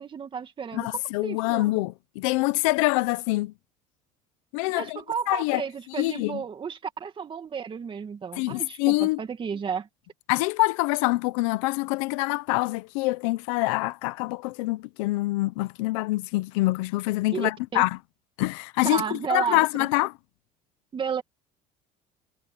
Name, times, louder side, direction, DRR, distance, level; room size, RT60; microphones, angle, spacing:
voice 1, 0.0-1.9 4.7-9.9 17.3-17.8 18.8-19.9 20.9-21.2, right 6 dB, 30° right, 2.4 m, -32 dB
voice 2, 0.7-3.5 4.5-5.0 5.3-5.6 6.0-6.4 8.4-9.2 10.3-17.9 18.4-20.1, left 21 dB, 90° left, 0.9 m, -25 dB
supercardioid pair, 105°, 16 cm